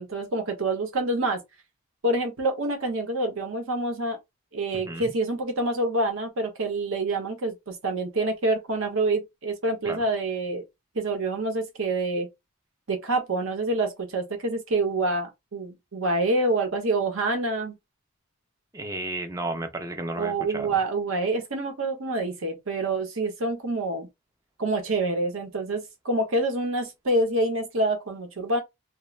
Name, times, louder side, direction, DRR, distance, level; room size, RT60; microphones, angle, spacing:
voice 1, 0.0-1.4 2.0-4.2 4.5-10.6 10.9-12.3 12.9-17.8 20.2-24.1 24.6-28.6, right 2 dB, 65° right, 0.8 m, -27 dB
voice 2, 4.7-5.1 9.9-10.0 18.7-20.8, right 2 dB, 15° right, 0.4 m, -33 dB
2.4 x 2.0 x 3.0 m
head